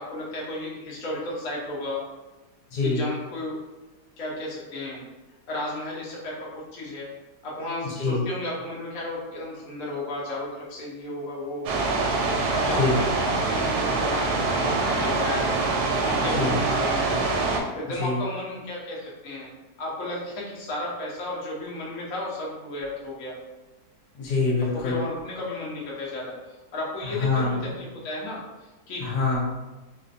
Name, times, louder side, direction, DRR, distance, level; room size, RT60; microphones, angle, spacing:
voice 1, 0.0-2.0 2.8-3.6 4.2-5.0 5.5-7.1 7.4-11.9 12.5-15.5 16.0-17.2 17.7-19.5 19.8-23.4 24.7-28.4 28.9-29.0, left 2 dB, 55° left, -5 dB, 1.2 m, -33 dB
voice 2, 2.7-3.0 7.8-8.2 12.8-12.9 16.4-16.6 18.0-18.2 24.1-25.0 27.0-27.6 29.0-29.4, left 3 dB, 80° left, -4 dB, 1.5 m, -25 dB
sound 1, 11.7-17.6, right 3 dB, 70° right, 1.0 m, -24 dB
4.2 x 2.4 x 2.5 m, 1.1 s
omnidirectional pair, 1.8 m